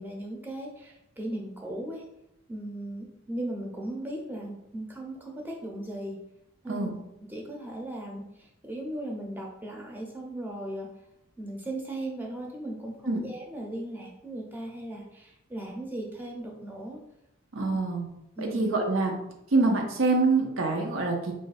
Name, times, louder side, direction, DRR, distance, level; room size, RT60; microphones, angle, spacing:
voice 1, 0.0-2.0 2.5-6.2 6.6-6.9 7.3-10.9 11.4-17.0 17.5-17.8 18.4-18.6, right 1 dB, 10° right, -1 dB, 0.6 m, -37 dB
voice 2, 17.5-18.1 18.4-19.1 19.5-21.3, right 3 dB, 80° right, 2 dB, 0.7 m, -25 dB
3.1 x 2.5 x 4.0 m, 0.83 s
head